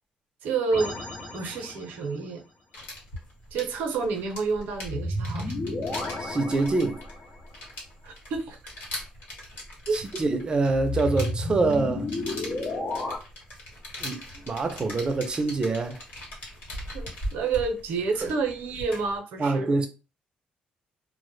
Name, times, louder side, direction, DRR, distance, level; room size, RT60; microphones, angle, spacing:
voice 1, 0.4-1.0 1.3-2.4 3.5-5.5 8.0-8.6 9.9-10.0 16.9-19.7, right 4 dB, 90° right, 0.6 m, -29 dB
sound 1, 0.7-2.1 4.8-7.4 10.6-13.2, left 2 dB, 60° left, 0.8 m, -32 dB
sound 2, 2.7-19.2, left 1 dB, 80° left, 1.2 m, -40 dB
voice 2, 6.2-7.0 9.9-12.1 14.0-16.0 18.2-18.3 19.4-19.9, right 3 dB, 30° right, 0.5 m, -25 dB
2.0 x 2.0 x 3.1 m
cardioid pair, 105°, 3 cm